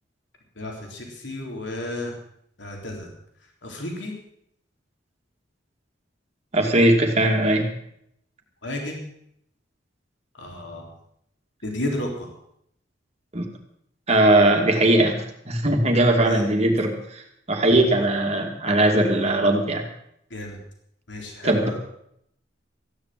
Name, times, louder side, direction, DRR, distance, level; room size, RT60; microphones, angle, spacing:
voice 1, 0.6-2.1 2.6-3.1 3.6-4.1 8.6-9.1 10.4-10.9 11.6-12.3 16.2-16.5 20.3-20.6 21.1-21.8, left 1 dB, 70° left, 0 dB, 3.7 m, -32 dB
voice 2, 6.5-7.7 13.3-13.5 14.1-17.2 17.5-19.8 21.4-21.8, right 1 dB, 35° right, 3 dB, 2.5 m, -19 dB
15.5 x 10.5 x 7.7 m, 0.72 s
head